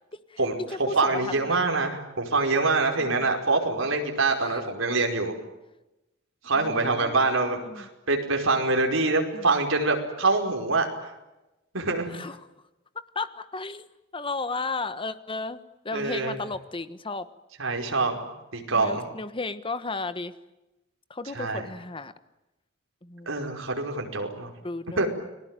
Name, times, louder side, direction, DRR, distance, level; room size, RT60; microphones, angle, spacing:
voice 1, 0.3-1.6 3.0-3.3 4.4-4.6 6.5-7.9 9.3-9.6 12.1-12.4 13.1-13.9 14.1-15.6 15.8-17.3 18.7-20.3 21.1-22.1 23.0-23.4 24.6-25.0, left 3 dB, 25° left, 13 dB, 1.3 m, -34 dB
voice 2, 0.9-5.3 6.4-10.9 11.7-12.1 15.9-16.4 17.6-19.0 21.3-21.7 23.3-24.5 25.0-25.1, right 3 dB, 75° right, 2 dB, 5.2 m, -25 dB
30.0 x 20.5 x 9.1 m, 0.99 s
head